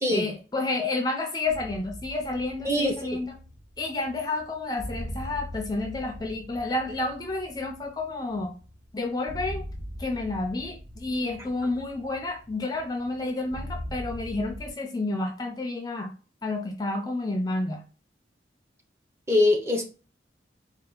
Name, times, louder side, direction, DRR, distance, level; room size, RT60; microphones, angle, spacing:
voice 1, 0.1-3.4 3.8-8.5 8.9-9.6 10.0-16.1 16.4-17.8, left 2 dB, 20° left, 3 dB, 0.5 m, -30 dB
sound 1, 1.5-14.7, equal, 40° right, 1.2 m, -41 dB
voice 2, 2.6-3.2 19.3-19.9, left 1 dB, 15° right, 2 dB, 0.7 m, -23 dB
4.5 x 2.5 x 3.8 m, 0.35 s
head